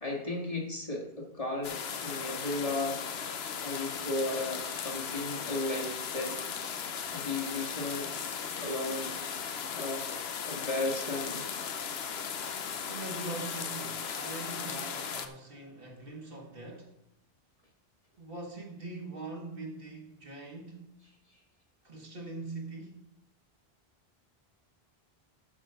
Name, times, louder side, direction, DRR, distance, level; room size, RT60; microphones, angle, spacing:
voice 1, 0.0-3.0 3.6-6.4 7.1-8.1 8.6-9.2 9.8-10.1 10.5-11.4, left 2 dB, 35° left, 2.0 m, -35 dB
sound 1, 1.6-15.3, left 7 dB, 75° left, 1.1 m, -37 dB
voice 2, 12.9-16.9 18.2-20.9 21.8-23.0, right 3 dB, 60° right, 1.8 m, -42 dB
12.5 x 5.1 x 5.7 m
omnidirectional pair, 1.1 m